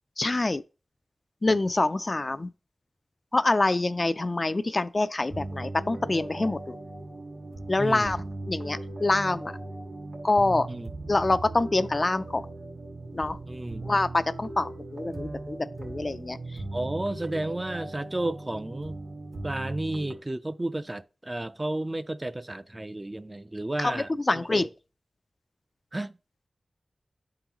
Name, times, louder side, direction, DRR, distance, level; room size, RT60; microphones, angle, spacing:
voice 1, 0.2-0.6 1.4-2.5 3.3-6.8 7.7-9.6 10.2-10.7 11.1-12.5 13.1-13.4 13.8-16.4 23.8-24.7, left 2 dB, 40° left, 0.4 m, -26 dB
sound 1, 5.3-20.2, right 2 dB, 80° right, 1.8 m, -38 dB
voice 2, 7.8-8.2 10.7-10.9 13.5-13.9 16.7-19.0 19.4-24.5 25.9-26.1, right 1 dB, 25° right, 0.4 m, -32 dB
11.0 x 3.8 x 3.0 m
wide cardioid pair, 65°, 0 cm